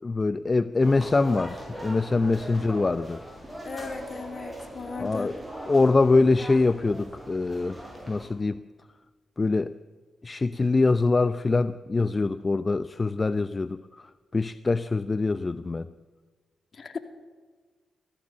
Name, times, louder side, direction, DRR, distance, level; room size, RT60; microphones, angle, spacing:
voice 1, 0.0-3.2 5.0-5.4 5.7-8.6 9.4-9.8 10.2-15.9, left 3 dB, 35° left, 14 dB, 0.7 m, -24 dB
sound 1, 0.8-8.3, right 1 dB, ahead, 7.7 m, -41 dB
voice 2, 3.6-5.3 16.7-17.0, left 5 dB, 55° left, 7 dB, 2.3 m, -37 dB
24.0 x 15.0 x 7.3 m, 1.5 s
hypercardioid pair, 40°, 0 cm